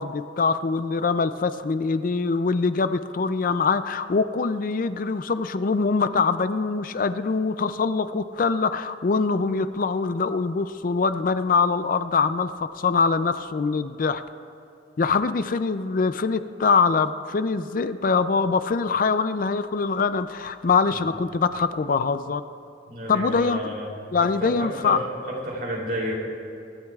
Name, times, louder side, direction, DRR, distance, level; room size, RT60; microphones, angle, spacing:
voice 1, 0.0-14.2 15.0-22.4 23.1-23.7 24.1-25.0, left 4 dB, 50° left, 12 dB, 0.4 m, -23 dB
voice 2, 22.9-26.2, equal, 55° right, -3 dB, 3.2 m, -31 dB
24.0 x 12.0 x 2.4 m, 2.6 s
head